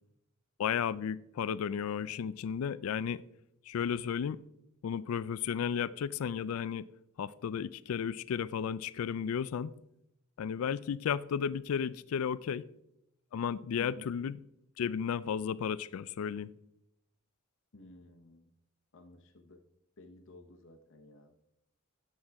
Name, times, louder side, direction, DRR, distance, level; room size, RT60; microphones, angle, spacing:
voice 1, 0.6-3.2 3.7-4.4 4.8-6.9 7.2-9.7 10.4-12.6 13.3-14.4 14.8-16.5, left 7 dB, 85° left, 0.3 m, -33 dB
voice 2, 13.8-14.1 17.7-18.5 18.9-19.6 20.0-21.3, left 2 dB, 65° left, 0.9 m, -54 dB
8.8 x 7.3 x 4.7 m
head